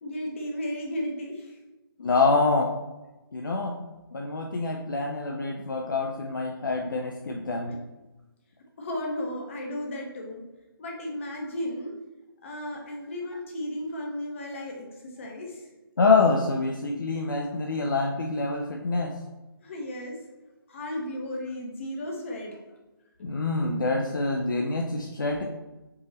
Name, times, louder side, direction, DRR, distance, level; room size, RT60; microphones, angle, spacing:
voice 1, 0.0-1.6 8.8-10.4 10.8-11.9 12.4-15.7 19.6-20.2 20.7-22.6 23.2-23.3, left 1 dB, 30° left, 0 dB, 0.8 m, -34 dB
voice 2, 2.0-2.7 3.3-3.7 4.1-7.8 16.0-19.1 23.2-25.4, left 3 dB, 55° left, 0 dB, 0.5 m, -26 dB
4.6 x 2.6 x 3.1 m, 1.1 s
figure-of-eight pair, 150°, 13 cm